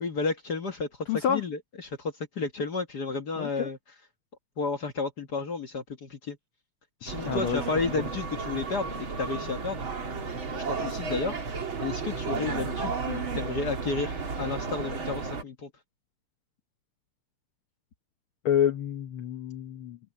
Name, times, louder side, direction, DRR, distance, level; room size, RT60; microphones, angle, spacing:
voice 1, 0.0-3.8 4.6-6.4 7.0-9.8 10.7-15.7, left 4 dB, 50° left, 1.2 m, -32 dB
voice 2, 1.1-1.4 3.4-3.7 7.2-7.6 18.4-20.0, left 9 dB, 80° left, 1.2 m, -28 dB
sound 1, 7.1-15.4, right 4 dB, 40° right, 3.4 m, -33 dB
omnidirectional pair, 3.6 m